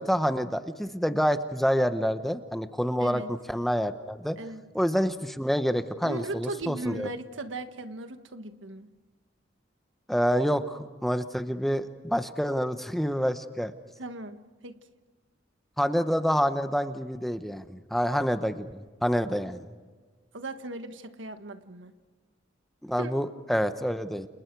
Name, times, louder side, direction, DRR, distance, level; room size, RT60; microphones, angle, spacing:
voice 1, 0.0-4.4 4.7-7.1 10.1-13.7 15.8-19.7 22.8-24.3, equal, ahead, 9 dB, 1.0 m, -27 dB
voice 2, 3.0-3.3 4.4-4.6 6.0-8.9 14.0-14.8 20.3-21.9 23.0-23.1, right 2 dB, 85° right, 8 dB, 1.5 m, -38 dB
29.5 x 29.0 x 4.7 m, 1.4 s
head